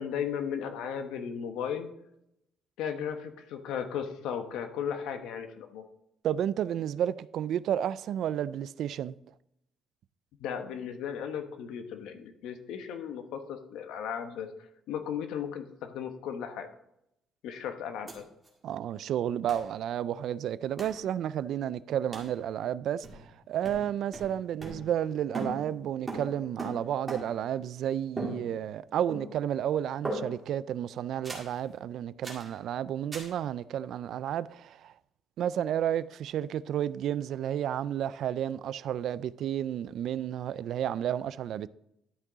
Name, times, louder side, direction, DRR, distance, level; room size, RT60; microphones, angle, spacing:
voice 1, 0.0-1.9 2.8-5.8 10.4-14.5 14.9-16.7 17.4-18.2, left 8 dB, 90° left, 1.1 m, -35 dB
voice 2, 6.2-9.2 18.6-34.9 35.4-41.7, right 10 dB, 55° right, 0.3 m, -31 dB
sound 1, 18.1-18.2 18.4-18.5 19.5-19.7 20.8-21.0 22.1-22.4 23.0-23.4 23.6-25.1 25.3-27.5 28.2-28.8 29.1-29.5 30.0-30.6 31.2-31.6 32.2-32.5 33.1-33.4, right 2 dB, 15° right, 2.0 m, -39 dB
11.5 x 6.1 x 4.0 m
cardioid pair, 165°, 0 cm